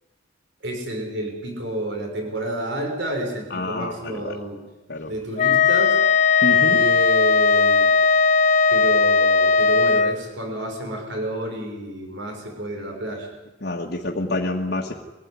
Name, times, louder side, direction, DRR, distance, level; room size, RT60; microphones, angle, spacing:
voice 1, 0.6-4.6 5.1-6.0 6.7-7.9 8.7-13.3, right 1 dB, 60° right, 2 dB, 6.4 m, -30 dB
voice 2, 3.5-4.3 4.9-5.1 6.4-6.8 13.6-14.9, left 2 dB, 55° left, -2 dB, 1.9 m, -27 dB
Wind instrument woodwind instrument, 5.4-10.2, left 5 dB, 40° left, 0.9 m, -17 dB
24.0 x 16.0 x 9.9 m, 1.1 s
head